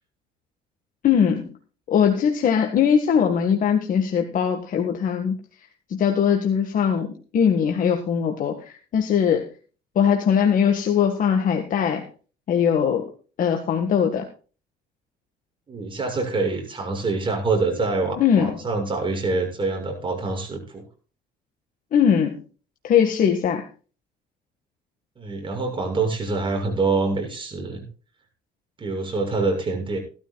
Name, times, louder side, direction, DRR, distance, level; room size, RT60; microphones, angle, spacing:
voice 1, 1.0-1.5 1.9-5.4 5.9-9.5 10.0-12.1 12.5-13.1 13.4-14.3 18.2-18.5 21.9-22.4 22.8-23.6, left 7 dB, 55° left, 4 dB, 1.7 m, -20 dB
voice 2, 15.7-20.8 25.2-27.9 28.8-30.0, right 3 dB, 30° right, 2 dB, 6.6 m, -25 dB
18.0 x 13.0 x 2.4 m, 0.37 s
cardioid pair, 110°, 17 cm